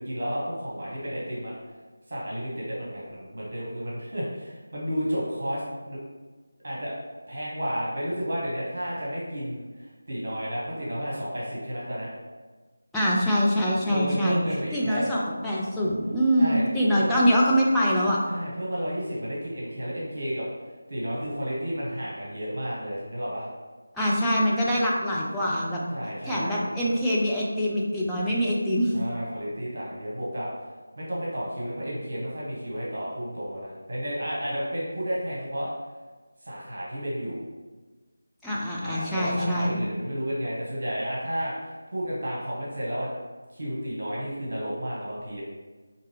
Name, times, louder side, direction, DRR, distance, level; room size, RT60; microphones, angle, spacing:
voice 1, 0.0-1.5 2.1-6.0 6.6-6.9 7.3-12.1 13.9-15.1 16.4-17.1 18.2-20.5 20.9-23.5 25.9-26.6 28.9-30.5 31.0-35.7 36.4-37.4 38.8-43.1 43.5-45.4, equal, 50° right, -5 dB, 1.2 m, -32 dB
voice 2, 12.9-14.4 14.7-18.2 23.9-25.8 26.2-28.9 38.4-39.8, equal, ahead, -9 dB, 0.5 m, -24 dB
4.5 x 2.9 x 3.2 m, 1.3 s
figure-of-eight pair, 165°, 0 cm